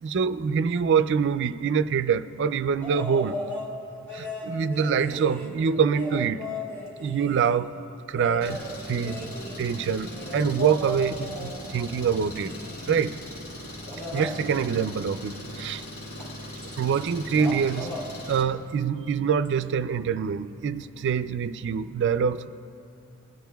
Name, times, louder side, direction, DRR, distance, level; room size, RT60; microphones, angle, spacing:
voice 1, 0.0-3.4 4.1-6.4 7.0-7.7 8.1-8.6 8.9-9.3 9.6-12.5 12.9-13.2 14.1-15.8 16.8-17.9 18.3-22.5, right 6 dB, 55° right, 13 dB, 0.4 m, -25 dB
sound 1, 2.8-3.7 4.1-7.6 8.1-13.0 13.9-14.4 16.2-16.3 16.6-17.1 17.3-18.1 19.4-19.5, left 1 dB, 10° left, 2.0 m, -36 dB
Engine, 8.4-18.4, left 1 dB, 80° left, 1.8 m, -39 dB
21.5 x 10.5 x 2.3 m, 2.6 s
head